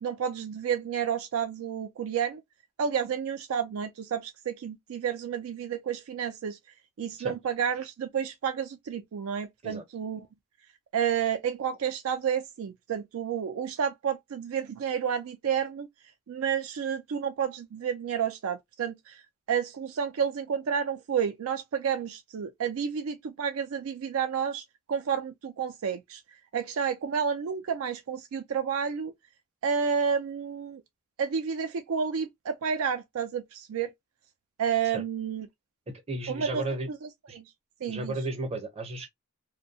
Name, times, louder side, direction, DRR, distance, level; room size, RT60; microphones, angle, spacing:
voice 1, 0.0-2.4 2.8-6.6 7.0-10.3 10.9-15.9 16.3-19.2 19.5-26.2 26.5-29.1 29.6-30.8 31.2-33.9 34.6-35.5 36.3-36.6 36.9-37.0 37.3-37.4 37.8-38.1, right 7 dB, 80° right, 0.4 m, -30 dB
voice 2, 35.9-36.9 37.3-37.4 37.9-39.1, right 2 dB, 30° right, 0.6 m, -34 dB
2.7 x 2.1 x 2.6 m
head